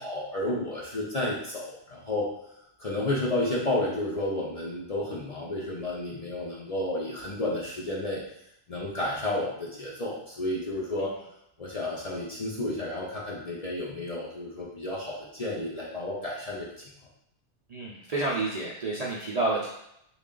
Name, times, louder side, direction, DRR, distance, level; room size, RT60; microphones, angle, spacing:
voice 1, 0.0-2.3 2.8-8.2 8.7-11.1 11.6-16.7, left 1 dB, 40° left, -5 dB, 0.6 m, -31 dB
voice 2, 17.7-19.7, right 2 dB, 50° right, -5 dB, 0.5 m, -29 dB
3.3 x 2.3 x 3.7 m, 0.77 s
omnidirectional pair, 1.2 m